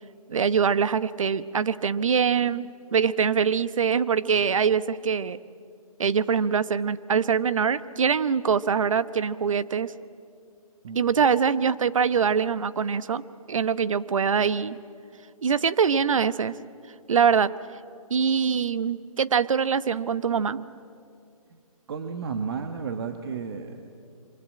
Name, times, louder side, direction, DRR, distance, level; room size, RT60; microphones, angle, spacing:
voice 1, 0.3-5.4 6.0-9.9 10.9-14.8 15.4-16.6 17.1-17.5 18.1-20.7, right 6 dB, 60° right, 15 dB, 1.0 m, -23 dB
voice 2, 21.9-23.9, right 5 dB, 40° right, 6 dB, 1.3 m, -32 dB
26.0 x 24.5 x 8.8 m, 2.5 s
hypercardioid pair, 160°, 19 cm